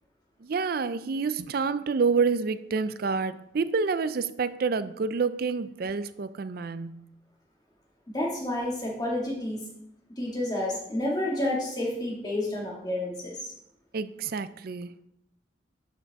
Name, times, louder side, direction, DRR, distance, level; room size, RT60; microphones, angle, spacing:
voice 1, 0.4-7.0 13.9-14.9, right 5 dB, 50° right, 14 dB, 0.4 m, -28 dB
voice 2, 8.1-9.6 10.2-13.5, left 1 dB, 20° left, -3 dB, 2.2 m, -30 dB
10.5 x 5.8 x 3.6 m, 0.78 s
head